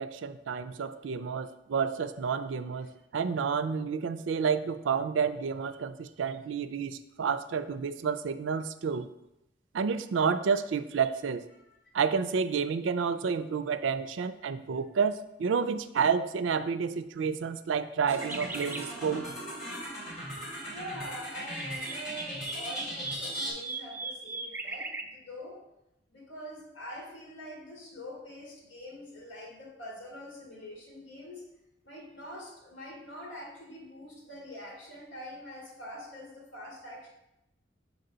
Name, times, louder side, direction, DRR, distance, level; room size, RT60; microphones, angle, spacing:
voice 1, 0.0-9.1 9.7-11.4 11.9-19.3, right 6 dB, 80° right, 12 dB, 0.4 m, -30 dB
sound 1, 18.1-23.5, equal, 40° left, 2.6 m, -38 dB
sound 2, 18.1-18.9 21.3-25.0, right 3 dB, 10° right, 0.4 m, -39 dB
voice 2, 20.7-25.6 26.1-31.4 31.8-37.1, equal, 70° left, -3 dB, 2.2 m, -44 dB
6.5 x 4.8 x 3.9 m, 0.88 s
head